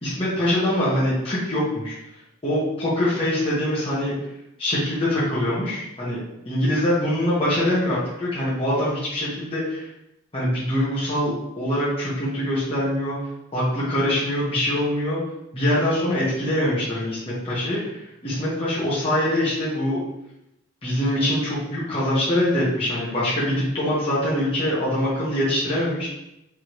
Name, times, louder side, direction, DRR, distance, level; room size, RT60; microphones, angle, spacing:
voice 1, 0.0-1.9 2.4-4.1 4.6-9.9 10.3-13.2 13.5-15.2 15.5-17.9 18.2-20.0 20.8-26.1, left 1 dB, 30° left, -9 dB, 1.4 m, -23 dB
4.9 x 3.5 x 3.1 m, 0.85 s
head